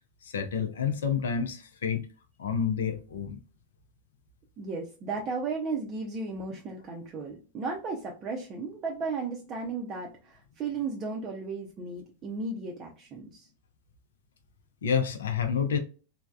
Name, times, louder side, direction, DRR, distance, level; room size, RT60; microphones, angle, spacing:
voice 1, 0.2-2.1 2.4-3.4 14.8-15.8, left 7 dB, 65° left, 0.4 m, -29 dB
voice 2, 4.6-13.5, right 4 dB, 30° right, 0.5 m, -35 dB
3.2 x 2.1 x 2.2 m
figure-of-eight pair, 90°, 0 cm